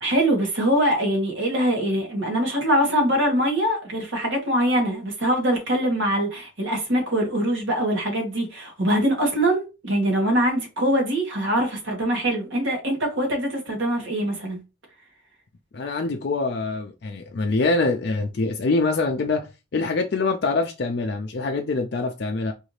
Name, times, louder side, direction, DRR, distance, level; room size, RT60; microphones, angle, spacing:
voice 1, 0.0-14.6, right 1 dB, 75° right, 1.6 m, -23 dB
voice 2, 15.7-22.5, left 3 dB, 55° left, 0.4 m, -24 dB
4.8 x 2.7 x 3.2 m
head